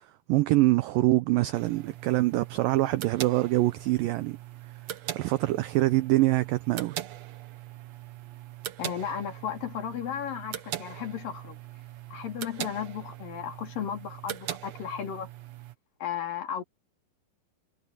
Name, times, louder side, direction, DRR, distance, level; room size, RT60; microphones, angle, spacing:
voice 1, 0.0-4.4 5.1-7.0, right 18 dB, 90° right, 2.0 m, -25 dB
sound 1, 1.5-15.8, right 12 dB, 70° right, 1.6 m, -41 dB
voice 2, 8.8-11.6 12.1-15.3 16.0-16.6, left 8 dB, 60° left, 4.2 m, -34 dB
omnidirectional pair, 4.7 m